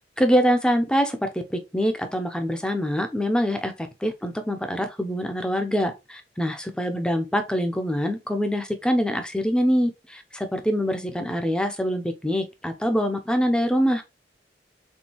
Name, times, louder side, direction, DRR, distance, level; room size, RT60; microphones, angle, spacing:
voice 1, 0.2-14.0, equal, 5° left, 0.6 m, -24 dB
4.4 x 3.8 x 3.0 m
head